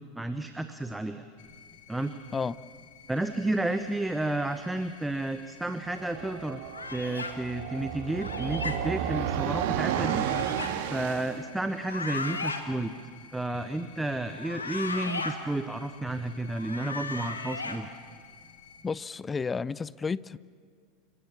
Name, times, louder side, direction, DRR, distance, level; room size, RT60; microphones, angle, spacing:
voice 1, 0.1-1.2 1.9-2.1 3.1-6.6 6.9-10.2 10.9-12.9 13.3-17.9, right 2 dB, 5° right, 10 dB, 1.0 m, -31 dB
sound 1, 1.4-18.8, left 7 dB, 55° left, 3.3 m, -53 dB
sound 2, 5.9-11.4, right 9 dB, 55° right, 1.5 m, -32 dB
sound 3, 6.7-7.3 8.2-8.8 9.9-10.7 11.7-12.6 14.3-15.3 16.5-17.8, left 4 dB, 80° left, 1.7 m, -36 dB
voice 2, 18.8-20.4, left 5 dB, 20° left, 21 dB, 0.5 m, -31 dB
29.5 x 17.0 x 7.3 m, 2.2 s
figure-of-eight pair, 80°, 0 cm